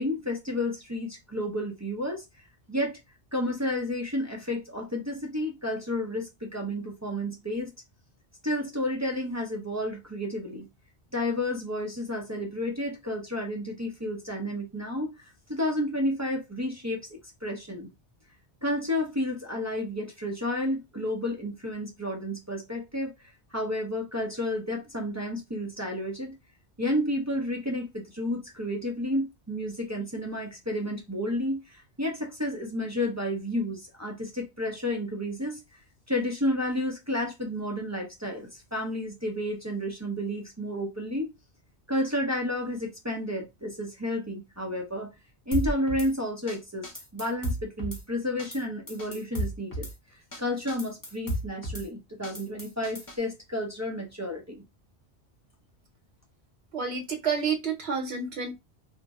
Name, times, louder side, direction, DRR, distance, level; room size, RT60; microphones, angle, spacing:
voice 1, 0.0-2.2 2.7-3.0 3.3-7.7 8.4-10.7 11.1-15.1 15.5-17.0 17.4-17.9 18.6-23.1 23.5-26.3 26.8-35.6 36.1-41.3 41.9-45.1 45.5-46.9 47.1-49.9 50.4-54.6, left 1 dB, 25° right, 0.4 m, -31 dB
Drum kit / Snare drum, 45.5-46.1 46.5-46.6 46.8-48.0 48.4-48.6 48.9-49.9 50.3-50.4 50.7-51.9 52.2-53.2, equal, 25° left, 0.6 m, -33 dB
voice 2, 56.7-58.5, right 5 dB, 70° right, 1.0 m, -29 dB
2.5 x 2.0 x 3.4 m
omnidirectional pair, 1.1 m